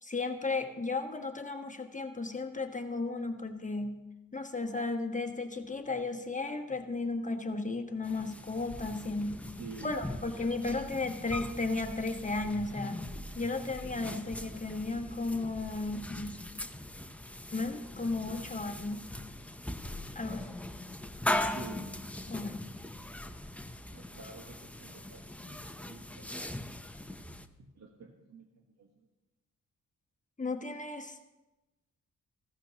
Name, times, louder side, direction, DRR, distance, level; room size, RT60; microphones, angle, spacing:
voice 1, 0.0-4.0 4.3-9.4 9.8-13.1 13.3-16.4 17.5-19.1 20.1-20.5 22.3-22.7 30.4-31.2, left 3 dB, 20° left, 4 dB, 1.3 m, -34 dB
sound 1, 8.0-27.5, left 1 dB, 5° left, 0.7 m, -40 dB
voice 2, 9.6-10.0 21.5-21.9 23.9-26.7 27.6-28.5 28.8-28.9, right 4 dB, 55° right, 1 dB, 1.5 m, -49 dB
15.0 x 14.0 x 2.9 m, 1.0 s
cardioid pair, 75°, 34 cm